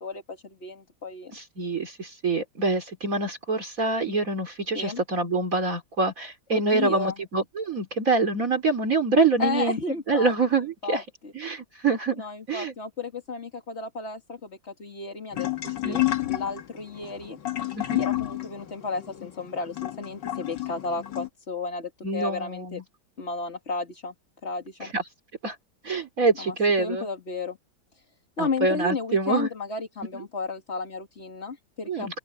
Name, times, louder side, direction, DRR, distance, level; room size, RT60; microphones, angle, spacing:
voice 1, 0.0-1.3 4.7-5.0 6.5-7.2 9.4-10.3 10.8-11.3 12.2-15.5 15.8-16.0 16.3-17.4 18.0-22.8 23.2-24.1 24.4-24.9 26.4-27.6 27.9-28.0 28.4-32.2, left 4 dB, 40° left, 2.4 m, -33 dB
voice 2, 1.3-9.8 10.1-11.0 11.3-12.7 15.8-16.0 17.8-18.0 22.0-22.8 24.8-25.0 25.4-25.6 25.8-27.1 28.4-29.5 30.1-30.2 31.9-32.1, right 3 dB, 50° right, 3.6 m, -25 dB
sound 1, 15.3-21.3, left 15 dB, 85° left, 1.9 m, -30 dB
open air
omnidirectional pair, 1.9 m